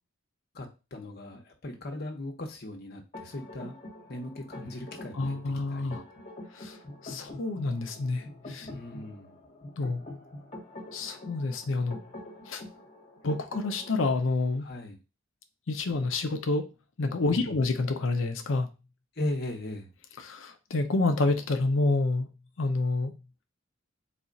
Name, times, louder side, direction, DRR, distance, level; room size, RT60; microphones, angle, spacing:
voice 1, 0.5-3.8 4.1-5.4 5.7-6.0 8.6-9.4 14.6-15.0 17.3-17.6 19.2-19.9, left 1 dB, 50° left, 2 dB, 1.0 m, -38 dB
sound 1, 3.1-14.2, left 1 dB, 35° left, 1.3 m, -45 dB
voice 2, 5.1-6.0 6.5-6.8 7.0-8.7 9.8-10.0 10.9-12.0 12.5-12.6 13.2-14.7 15.7-16.7 17.0-18.7 20.2-22.3 22.6-23.2, left 3 dB, 70° left, 6 dB, 0.6 m, -28 dB
4.1 x 2.4 x 4.0 m, 0.29 s
head